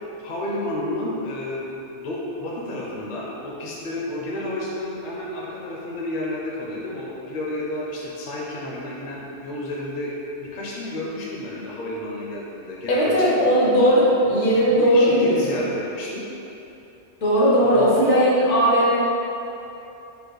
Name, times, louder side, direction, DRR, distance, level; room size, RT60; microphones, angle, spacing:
voice 1, 0.2-10.1 10.4-13.9 14.8-16.3 17.6-17.9, left 1 dB, 50° left, -4 dB, 0.7 m, -31 dB
voice 2, 12.9-15.6 17.2-19.0, equal, 80° left, -7 dB, 1.4 m, -18 dB
5.1 x 2.3 x 4.6 m, 3.0 s
omnidirectional pair, 1.2 m